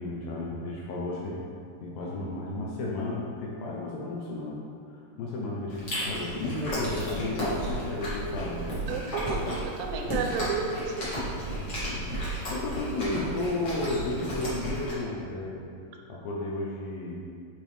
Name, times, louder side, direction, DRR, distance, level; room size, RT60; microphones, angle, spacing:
voice 1, 0.0-1.4 1.8-8.7 11.4-12.2 12.5-15.7 16.1-17.1, left 2 dB, 75° left, -3 dB, 2.2 m, -33 dB
Chewing mastication, 5.7-14.9, equal, 55° left, 1.2 m, -33 dB
voice 2, 8.9-11.1, right 5 dB, 85° right, 2 dB, 2.8 m, -32 dB
8.9 x 4.5 x 3.3 m, 2.3 s
omnidirectional pair, 4.7 m